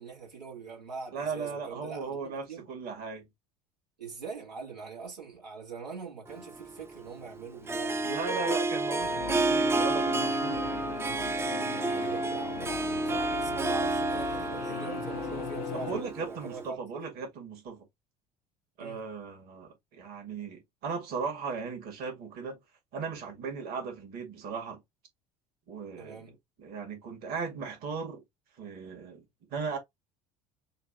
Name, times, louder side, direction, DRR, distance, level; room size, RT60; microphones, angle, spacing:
voice 1, 0.0-2.7 4.0-8.2 11.7-17.0 18.8-19.0 26.0-26.4, right 5 dB, 85° right, 2.1 m, -43 dB
voice 2, 1.1-3.3 8.0-10.8 15.7-17.9 18.8-22.6 22.9-24.8 25.7-26.2 26.6-28.2 28.6-29.2 29.5-29.8, right 5 dB, 50° right, 2.2 m, -37 dB
Harp, 6.3-16.7, right 2 dB, 10° right, 0.5 m, -30 dB
Singing / Musical instrument, 9.0-16.0, left 19 dB, 55° left, 0.4 m, -40 dB
6.4 x 2.8 x 2.6 m
figure-of-eight pair, 65°, 21 cm